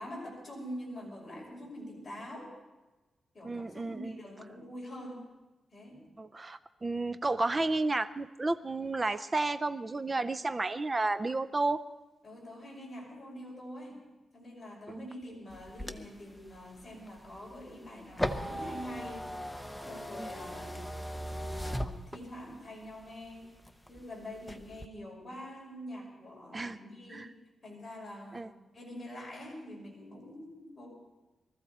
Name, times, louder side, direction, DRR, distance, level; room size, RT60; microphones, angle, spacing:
voice 1, 0.0-2.5 3.3-5.3 5.7-6.0 12.2-14.0 14.3-19.3 19.9-20.9 21.4-23.5 23.9-27.3 27.6-28.5 28.7-30.9, equal, 20° left, -4 dB, 5.9 m, -45 dB
voice 2, 3.4-4.1 6.2-11.8 14.9-15.1 20.2-20.3 26.5-26.8 27.1-27.3 28.3-28.5, right 2 dB, 25° right, 12 dB, 0.4 m, -32 dB
sound 1, 15.5-22.6 23.0-24.0 24.4-24.9, equal, 5° left, 0.8 m, -38 dB
23.0 x 14.5 x 4.3 m, 1.1 s
wide cardioid pair, 135°, 0 cm